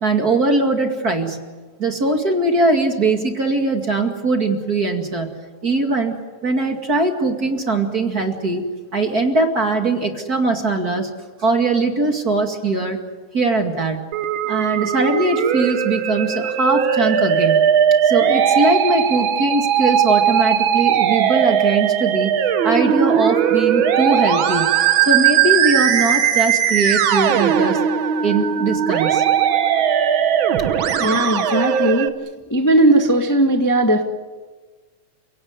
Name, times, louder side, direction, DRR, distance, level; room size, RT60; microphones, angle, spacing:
voice 1, 0.0-1.4 1.8-6.2 6.4-8.6 8.9-11.1 11.4-13.0 13.3-14.0 14.5-17.6 18.0-22.4 22.6-27.8 28.2-29.2, right 3 dB, 30° right, 3 dB, 2.2 m, -20 dB
Musical instrument, 14.1-32.1, right 8 dB, 75° right, 1.1 m, -18 dB
voice 2, 30.9-32.1 32.5-34.0, right 1 dB, 10° left, 3 dB, 1.1 m, -17 dB
30.0 x 17.5 x 9.6 m, 1.3 s
omnidirectional pair, 3.9 m